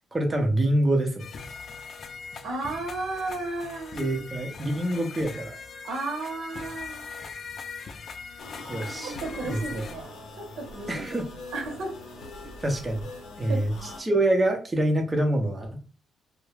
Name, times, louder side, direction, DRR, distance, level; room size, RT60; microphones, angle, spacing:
voice 1, 0.1-1.3 3.9-5.6 8.7-9.1 9.4-9.8 10.9-11.3 12.4-13.1 13.4-13.7 14.0-15.7, right 1 dB, 20° right, 3 dB, 0.6 m, -25 dB
sound 1, 1.2-9.9, left 5 dB, 50° left, 0.3 m, -41 dB
voice 2, 2.4-4.2 5.8-7.2 9.0-11.0 11.5-12.0 13.5-13.6, right 2 dB, 85° right, 1 dB, 0.9 m, -34 dB
sound 2, 8.4-14.0, left 2 dB, 80° left, 0.8 m, -42 dB
2.2 x 2.0 x 3.2 m, 0.36 s
cardioid pair, 90°, 0 cm